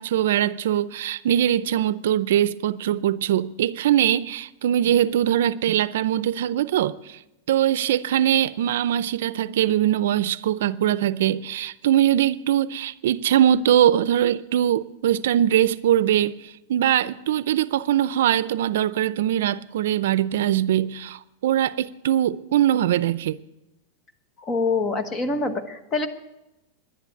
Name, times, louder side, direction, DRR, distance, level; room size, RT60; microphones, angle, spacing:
voice 1, 0.0-7.2 7.5-23.4, right 11 dB, 75° right, 0.5 m, -22 dB
voice 2, 24.4-26.1, left 3 dB, 20° left, 1.3 m, -25 dB
11.0 x 11.0 x 9.6 m
supercardioid pair, 155°, 0 cm